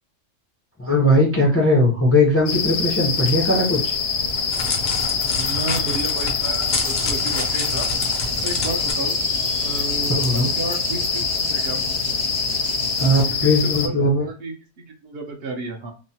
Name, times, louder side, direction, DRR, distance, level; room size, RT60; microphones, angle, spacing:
voice 1, 0.8-4.0 10.1-10.5 13.0-14.3, left 1 dB, 25° left, -2 dB, 0.3 m, -19 dB
sound 1, 2.5-13.9, left 5 dB, 65° left, 0.7 m, -24 dB
Crackle, 4.0-8.9, left 3 dB, 80° left, 1.1 m, -29 dB
voice 2, 5.3-7.9 8.4-9.2 9.6-11.9 13.0-13.5 13.8-14.5 15.0-15.9, right 3 dB, 60° right, 3 dB, 0.8 m, -32 dB
sound 2, 6.7-13.3, right 3 dB, 80° right, 1.1 m, -34 dB
2.9 x 2.0 x 2.7 m, 0.37 s
omnidirectional pair, 1.3 m